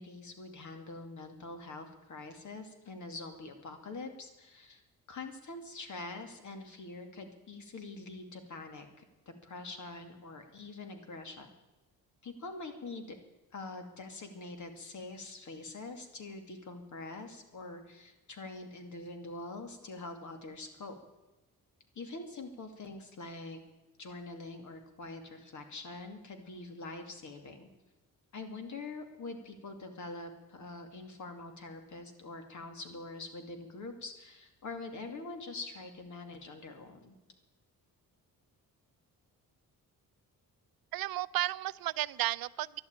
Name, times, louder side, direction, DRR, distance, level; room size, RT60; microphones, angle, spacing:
voice 1, 0.0-4.8 5.1-8.9 9.3-11.5 12.2-13.2 13.5-21.0 22.0-23.6 24.0-27.7 28.3-37.2, left 3 dB, 55° left, 5 dB, 2.4 m, -44 dB
voice 2, 40.9-42.8, right 15 dB, 80° right, 17 dB, 0.5 m, -33 dB
12.0 x 11.5 x 8.8 m, 1.0 s
cardioid pair, 130°, 35 cm